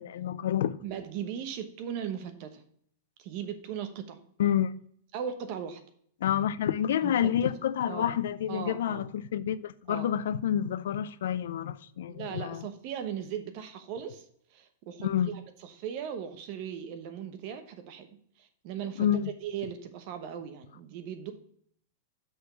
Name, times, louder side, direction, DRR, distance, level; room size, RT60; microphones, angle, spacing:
voice 1, 0.0-0.8 4.4-4.7 6.2-12.7 15.0-15.4 19.0-19.3, left 10 dB, 75° left, 0.5 m, -28 dB
voice 2, 0.8-2.6 3.2-4.2 5.1-5.8 7.0-7.5 7.9-8.2 8.5-9.0 9.9-10.1 12.1-14.2 14.5-19.1 19.4-21.3, right 8 dB, 40° right, 1.0 m, -38 dB
6.3 x 5.1 x 5.6 m
supercardioid pair, 170°, 0 cm